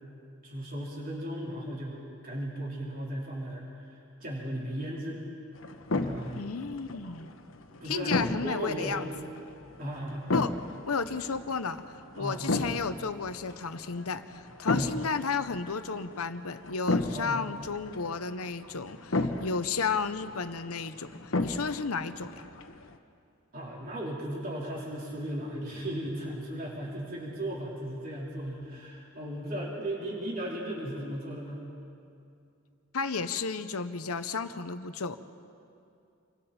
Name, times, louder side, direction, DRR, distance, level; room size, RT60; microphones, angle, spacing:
voice 1, 0.4-5.2 6.0-6.5 7.8-9.0 9.8-10.2 12.2-12.4 14.7-15.0 17.1-17.4 23.5-31.6, right 1 dB, 40° right, -5 dB, 4.3 m, -36 dB
sound 1, 5.5-23.0, left 2 dB, 65° left, 1.2 m, -35 dB
voice 2, 6.4-7.3 7.8-9.1 10.3-10.5 10.9-22.5 32.9-35.2, left 5 dB, 90° left, 10 dB, 1.0 m, -33 dB
29.0 x 23.5 x 4.4 m, 2.5 s
head